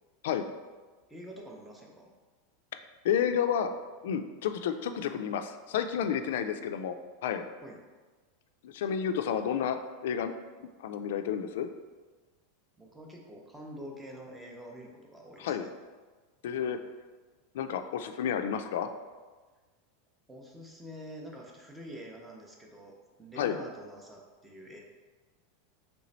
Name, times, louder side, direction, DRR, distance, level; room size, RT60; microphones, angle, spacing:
voice 1, 1.1-2.1 7.6-7.8 12.8-15.7 20.3-22.9 23.2-24.8, equal, 5° right, -1 dB, 0.5 m, -46 dB
voice 2, 3.0-3.7 4.0-6.9 7.2-7.4 8.6-10.3 10.8-11.7 15.4-15.7 16.4-16.8 17.5-18.9 23.4-23.5, left 8 dB, 75° left, 8 dB, 0.3 m, -30 dB
3.2 x 3.0 x 4.0 m, 1.3 s
supercardioid pair, 160°, 0 cm